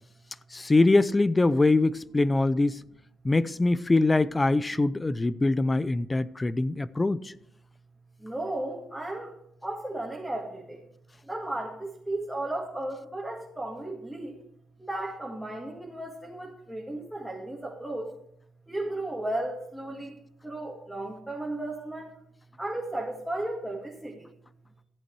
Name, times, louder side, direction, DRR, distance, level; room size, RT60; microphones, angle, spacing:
voice 1, 0.5-2.8 3.2-7.3, left 2 dB, 20° left, 0.5 m, -23 dB
voice 2, 8.2-9.3 9.6-10.8 11.3-14.4 14.9-18.1 18.7-20.1 20.4-22.1 22.6-24.1, right 1 dB, 5° right, 2.1 m, -34 dB
14.0 x 8.3 x 4.7 m
cardioid pair, 90°, 0 cm